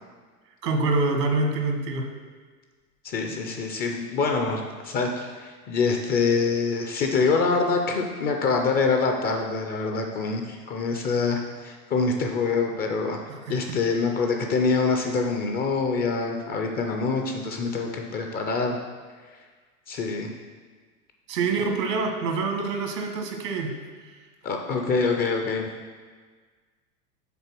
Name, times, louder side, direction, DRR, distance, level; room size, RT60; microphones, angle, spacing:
voice 1, 0.6-2.1 13.5-13.8 21.3-23.7, right 3 dB, 80° right, 3 dB, 1.5 m, -26 dB
voice 2, 3.0-18.8 19.9-20.3 24.4-25.7, left 4 dB, 20° left, 3 dB, 0.4 m, -25 dB
6.7 x 4.0 x 5.9 m, 1.5 s
hypercardioid pair, 105°, 49 cm